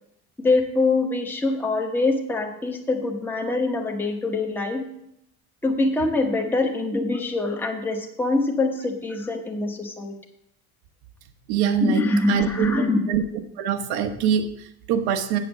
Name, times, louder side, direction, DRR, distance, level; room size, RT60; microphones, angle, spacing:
voice 1, 0.4-4.8 5.6-10.1 11.8-13.0, left 2 dB, 5° left, 2 dB, 1.0 m, -24 dB
voice 2, 11.5-13.2 13.6-15.4, right 8 dB, 85° right, 7 dB, 1.2 m, -24 dB
8.3 x 7.3 x 7.1 m, 0.77 s
cardioid pair, 155°, 36 cm